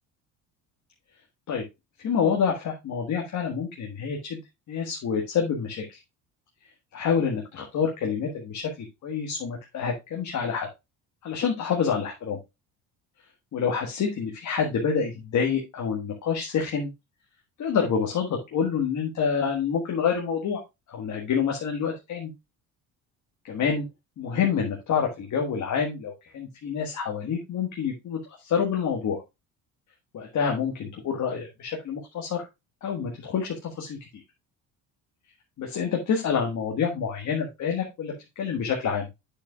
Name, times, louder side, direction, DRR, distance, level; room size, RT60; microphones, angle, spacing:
voice 1, 2.0-4.4 4.7-6.0 6.9-10.7 11.2-12.4 13.5-16.9 17.6-20.6 20.9-22.3 23.4-23.9 24.2-29.2 30.1-32.4 32.8-34.0 35.6-39.1, left 6 dB, 55° left, 1 dB, 1.6 m, -27 dB
8.1 x 6.7 x 2.3 m, 0.22 s
cardioid pair, 95°, 37 cm